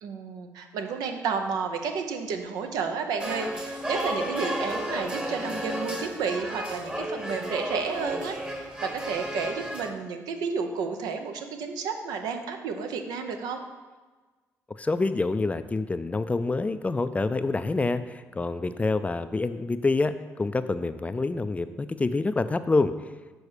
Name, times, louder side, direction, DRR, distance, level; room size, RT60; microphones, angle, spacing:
voice 1, 0.0-13.6, right 5 dB, 75° right, 5 dB, 0.7 m, -31 dB
sound 1, 3.2-9.9, right 1 dB, 15° right, 1.1 m, -33 dB
voice 2, 14.7-22.9, left 3 dB, 20° left, 12 dB, 0.4 m, -27 dB
6.5 x 4.2 x 4.9 m, 1.3 s
supercardioid pair, 60°, 7 cm